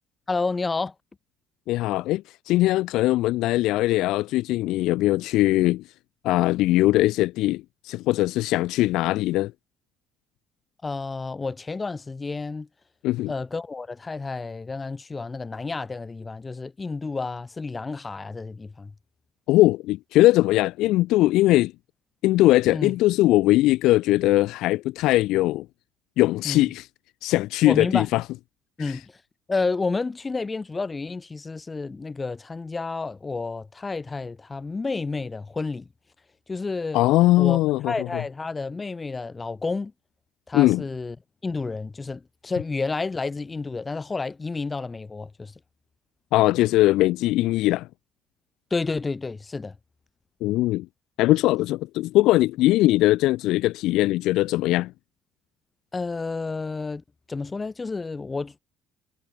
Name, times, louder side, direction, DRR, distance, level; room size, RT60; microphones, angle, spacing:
voice 1, 0.3-0.9 10.8-12.7 13.3-18.9 22.7-22.9 26.4-26.7 27.6-28.1 28.8-29.2 29.5-35.9 36.5-37.0 37.4-37.6 37.9-39.9 40.5-41.1 41.4-45.5 48.7-49.8 55.9-58.6, left 3 dB, 25° left, 4.9 m, -30 dB
voice 2, 1.7-5.8 6.2-9.5 13.0-13.3 19.5-21.7 22.2-25.6 26.2-26.9 27.2-28.2 28.8-29.0 36.9-38.2 40.5-40.8 46.3-47.9 50.4-50.9 51.2-54.9, left 17 dB, 65° left, 1.7 m, -21 dB
hypercardioid pair, 55°, 0 cm